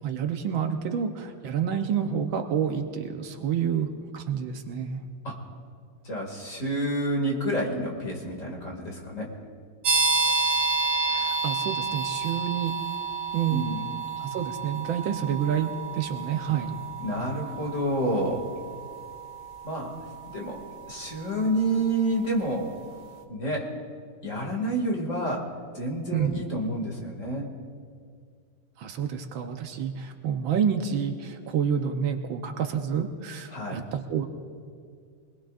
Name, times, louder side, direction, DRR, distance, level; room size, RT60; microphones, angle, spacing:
voice 1, 0.0-5.0 11.1-12.7 13.3-13.7 14.2-16.8 26.1-26.3 28.8-34.3, right 8 dB, 75° right, 5 dB, 1.6 m, -28 dB
voice 2, 6.0-9.3 13.5-13.8 17.0-18.5 19.6-19.9 20.3-20.6 20.9-22.7 23.3-23.7 24.2-25.5 25.7-27.5 33.5-33.8, right 1 dB, 40° left, 0 dB, 2.6 m, -29 dB
sound 1, 9.8-22.4, right 4 dB, 50° right, 1.6 m, -30 dB
24.5 x 20.5 x 2.5 m, 2.1 s
omnidirectional pair, 2.3 m